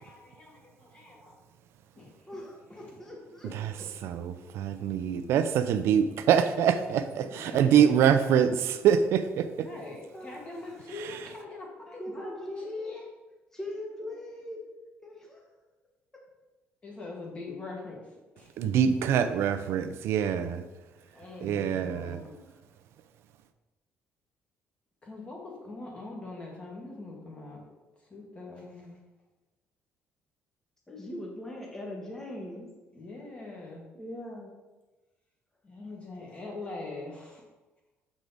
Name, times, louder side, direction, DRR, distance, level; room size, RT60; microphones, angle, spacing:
voice 1, 0.0-1.4 2.0-2.3 2.7-3.1 3.4-3.6 7.2-8.1 9.6-13.0 16.8-18.6 21.1-22.2 25.0-27.6 28.1-29.0 32.9-33.8 35.6-37.4, left 3 dB, 25° left, -1 dB, 1.7 m, -43 dB
voice 2, 2.3-3.9 7.7-8.1 10.1-10.9 11.9-13.1 13.5-14.7 15.0-15.4 21.0-21.3 21.9-22.5 30.9-32.7 33.9-34.5, left 1 dB, 10° left, -1 dB, 1.1 m, -41 dB
voice 3, 4.0-9.7 11.0-11.2 18.6-20.6 21.4-22.2, right 8 dB, 70° right, 10 dB, 0.5 m, -25 dB
7.2 x 4.9 x 4.0 m, 1.1 s
cardioid pair, 155°, 5 cm